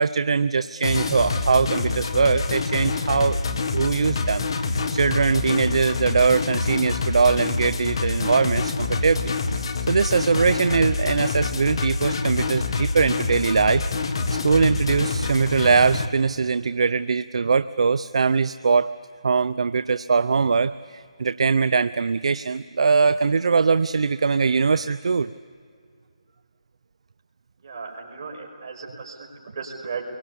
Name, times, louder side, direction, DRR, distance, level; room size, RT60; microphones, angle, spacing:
voice 1, 0.0-3.4 3.7-13.8 14.3-18.9 19.2-25.3, right 5 dB, 60° right, 14 dB, 0.6 m, -21 dB
sound 1, 0.8-16.1, left 3 dB, 50° left, 1.8 m, -26 dB
voice 2, 27.6-30.0, right 5 dB, 40° right, 1 dB, 5.6 m, -36 dB
28.0 x 23.5 x 8.5 m, 2.3 s
hypercardioid pair, 165°, 4 cm